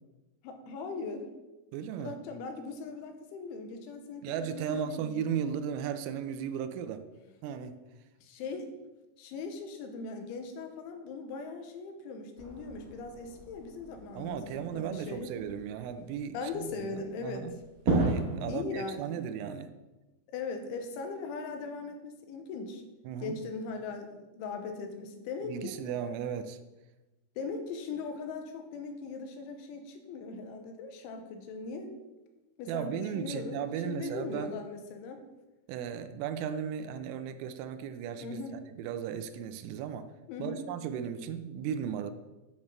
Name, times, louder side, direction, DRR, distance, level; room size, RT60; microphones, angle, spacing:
voice 1, 0.4-1.3 2.0-5.2 8.2-8.7 9.2-15.3 16.3-17.5 18.4-19.2 20.3-22.8 23.2-25.8 27.4-31.9 32.6-35.2 38.2-38.6 40.3-40.6, left 4 dB, 80° left, 5 dB, 3.3 m, -39 dB
voice 2, 1.7-2.2 4.2-7.0 7.4-7.8 14.2-16.9 17.2-17.5 17.9-19.7 23.1-23.4 25.5-26.6 32.7-34.6 35.7-40.1 40.4-42.1, right 8 dB, 90° right, 10 dB, 3.2 m, -36 dB
sound 1, 12.4-18.4, right 2 dB, 40° right, 1.2 m, -35 dB
9.4 x 5.3 x 7.1 m, 1.1 s
omnidirectional pair, 5.6 m